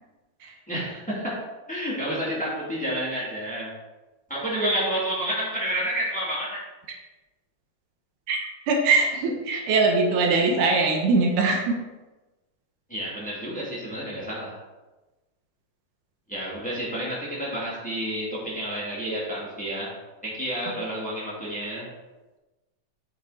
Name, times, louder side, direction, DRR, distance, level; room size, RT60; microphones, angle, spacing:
voice 1, 0.7-1.4 1.7-3.7 4.3-6.6 12.9-14.5 16.3-19.9 20.2-21.9, right 1 dB, 5° left, -7 dB, 2.3 m, -30 dB
voice 2, 8.7-11.8, right 3 dB, 85° right, 2 dB, 2.6 m, -22 dB
8.2 x 5.8 x 4.3 m, 1.1 s
omnidirectional pair, 3.5 m